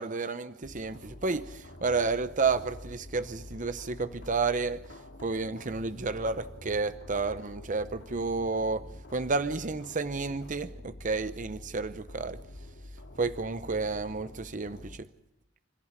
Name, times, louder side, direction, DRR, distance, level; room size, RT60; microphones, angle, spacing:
voice 1, 0.0-4.8 5.2-8.8 9.1-12.4 13.2-15.1, right 4 dB, 40° right, 0.8 m, -31 dB
sound 1, 0.6-15.0, left 1 dB, 65° left, 2.1 m, -47 dB
27.0 x 14.5 x 9.8 m
head